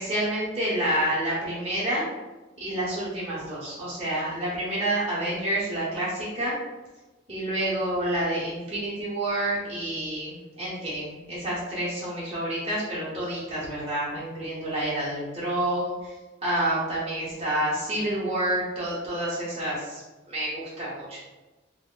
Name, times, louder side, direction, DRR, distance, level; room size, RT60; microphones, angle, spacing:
voice 1, 0.0-2.1 2.6-6.5 7.3-16.1 16.4-20.0 20.3-21.2, right 1 dB, 30° right, -8 dB, 0.8 m, -28 dB
2.8 x 2.0 x 3.7 m, 1.2 s
head